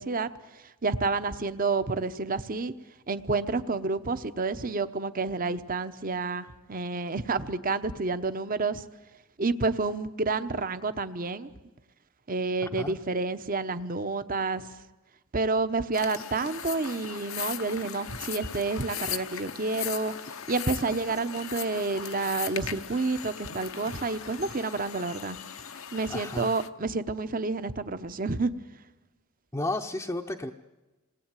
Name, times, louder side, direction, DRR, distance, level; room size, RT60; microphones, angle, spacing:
voice 1, 0.0-2.7 3.1-8.8 9.4-11.5 12.3-14.7 15.3-20.1 20.5-25.4 25.9-28.5, right 3 dB, 40° right, 12 dB, 1.0 m, -29 dB
voice 2, 12.6-13.0 26.1-26.5 29.5-30.5, left 2 dB, 15° left, 1 dB, 0.7 m, -33 dB
sound 1, 15.9-26.7, left 9 dB, 65° left, 0.9 m, -39 dB
27.5 x 19.5 x 9.1 m, 1.2 s
head